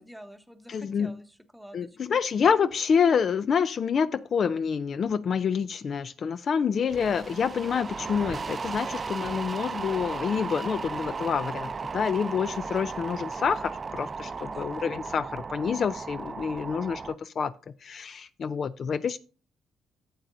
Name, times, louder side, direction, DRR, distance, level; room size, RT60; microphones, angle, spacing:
voice 1, 0.0-2.0 14.4-14.8, equal, ahead, 8 dB, 1.0 m, -48 dB
voice 2, 0.7-1.1 1.7-17.5 17.8-19.2, left 6 dB, 55° left, 15 dB, 0.3 m, -27 dB
sound 1, 6.9-17.1, right 4 dB, 35° right, 0.5 m, -35 dB
11.5 x 7.8 x 2.6 m, 0.36 s
cardioid pair, 85°, 0 cm